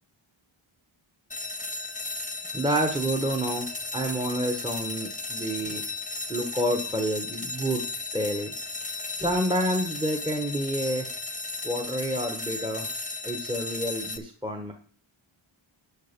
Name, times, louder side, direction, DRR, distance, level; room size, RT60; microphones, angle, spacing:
sound 1, 1.3-14.2, left 3 dB, 15° left, 0.8 m, -35 dB
voice 1, 2.5-3.7 3.9-5.8 6.3-7.8 8.1-8.5 9.2-11.1 11.6-12.9 13.2-14.7, right 1 dB, 10° right, 3 dB, 1.1 m, -28 dB
11.0 x 5.4 x 5.2 m, 0.43 s
wide cardioid pair, 125°, 49 cm